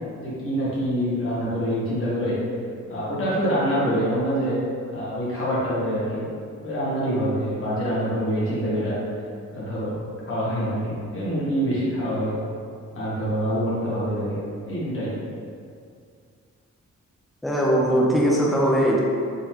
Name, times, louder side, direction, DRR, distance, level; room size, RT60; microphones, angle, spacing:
voice 1, 0.2-2.4 2.9-4.6 4.9-6.3 6.6-9.0 9.5-9.9 10.3-12.3 12.9-14.4 14.6-15.1, equal, 45° left, -9 dB, 1.2 m, -25 dB
voice 2, 17.4-19.0, equal, ahead, -3 dB, 0.3 m, -20 dB
3.8 x 3.1 x 2.8 m, 2.2 s
wide cardioid pair, 175°, 29 cm